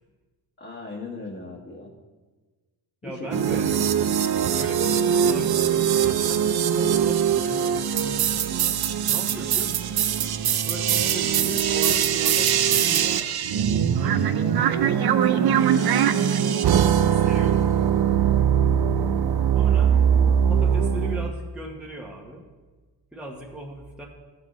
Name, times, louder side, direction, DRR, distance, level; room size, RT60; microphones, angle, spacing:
voice 1, 0.6-1.9 3.0-3.9 11.2-11.6 16.1-16.4 19.9-20.3, left 3 dB, 30° left, -4 dB, 1.4 m, -38 dB
voice 2, 3.0-3.7 4.5-8.7 9.1-10.0 10.6-13.2 13.8-14.8 15.2-17.8 19.5-19.9 20.5-22.4 23.1-24.1, right 1 dB, ahead, -2 dB, 1.1 m, -38 dB
sound 1, 3.3-21.3, right 8 dB, 60° right, 0.6 m, -21 dB
14.0 x 6.3 x 3.1 m, 1.3 s
cardioid pair, 95°, 43 cm